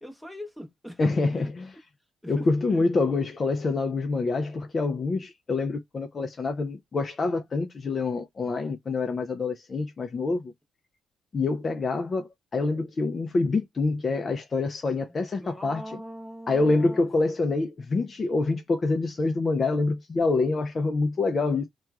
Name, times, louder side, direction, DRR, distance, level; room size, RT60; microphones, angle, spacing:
voice 1, 0.0-1.5 2.2-2.9 15.4-17.4, equal, ahead, 0.9 m, -42 dB
voice 2, 1.0-1.7 2.3-10.5 11.3-15.8 16.5-21.7, left 3 dB, 35° left, 0.5 m, -26 dB
2.9 x 2.3 x 2.3 m
cardioid pair, 90°, 0 cm